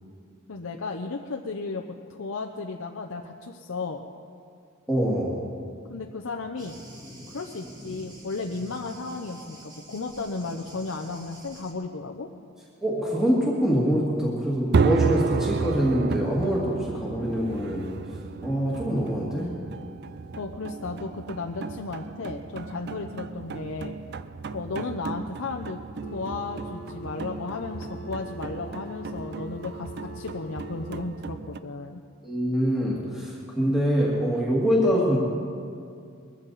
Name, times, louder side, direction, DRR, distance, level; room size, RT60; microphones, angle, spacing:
voice 1, 0.5-4.1 5.9-6.8 7.3-12.3 20.4-24.0 24.5-25.8 26.1-32.0, left 3 dB, 75° left, 3 dB, 0.7 m, -34 dB
voice 2, 4.9-5.4 12.8-17.9 18.4-19.5 32.2-35.2, equal, ahead, -6 dB, 2.0 m, -24 dB
Thunder, 6.6-11.7, equal, 20° right, 2.6 m, -46 dB
sound 1, 14.7-31.6, right 5 dB, 55° right, 0.5 m, -32 dB
Telephone, 26.0-31.0, equal, 45° left, 1.0 m, -43 dB
21.5 x 15.0 x 4.1 m, 2.4 s
head